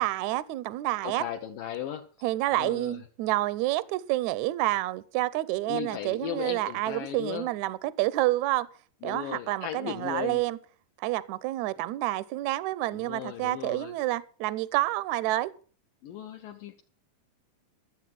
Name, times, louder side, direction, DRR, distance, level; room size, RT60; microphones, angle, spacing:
voice 1, 0.0-1.2 2.2-8.7 9.0-10.6 11.0-15.5, right 17 dB, 80° right, 1.7 m, -28 dB
voice 2, 1.0-2.0 2.5-3.0 5.7-7.5 9.0-10.4 12.9-13.9 16.0-16.8, left 10 dB, 75° left, 2.5 m, -36 dB
14.5 x 7.4 x 7.6 m
omnidirectional pair, 4.1 m